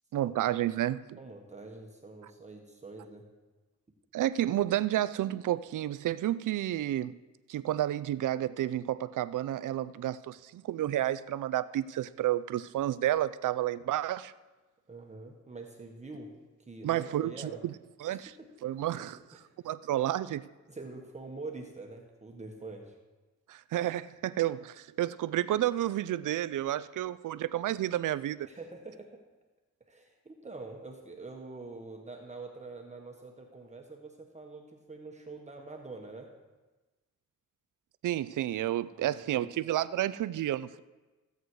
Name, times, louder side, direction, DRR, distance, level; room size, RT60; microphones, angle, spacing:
voice 1, 0.1-1.2 4.1-7.2 7.5-14.3 16.8-17.7 18.0-18.3 18.6-19.2 19.6-20.4 23.5-28.5 38.0-40.8, right 13 dB, 85° right, 16 dB, 0.5 m, -31 dB
voice 2, 1.2-3.2 14.9-16.3 16.6-17.6 18.1-18.5 19.1-19.5 19.9-20.1 20.7-22.9 28.5-29.2 29.9-36.3 38.9-39.5, right 3 dB, 25° right, 1 dB, 1.3 m, -45 dB
15.5 x 8.2 x 4.7 m, 1.2 s
wide cardioid pair, 115°, 30 cm